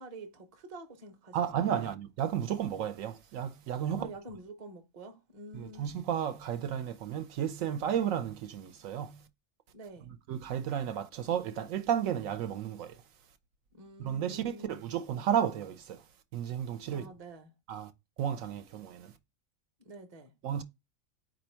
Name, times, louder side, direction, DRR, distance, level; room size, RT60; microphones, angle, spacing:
voice 1, 0.0-1.4 1.6-1.9 3.9-6.0 9.7-10.1 13.7-14.8 16.9-17.5 19.8-20.3, right 2 dB, 35° right, 0.7 m, -48 dB
voice 2, 1.3-4.1 5.5-9.2 10.1-13.0 14.0-16.0 16.3-17.1 17.7-17.9 18.2-19.1 20.4-20.6, right 9 dB, 75° right, 0.9 m, -33 dB
4.4 x 2.5 x 4.3 m
omnidirectional pair, 1.5 m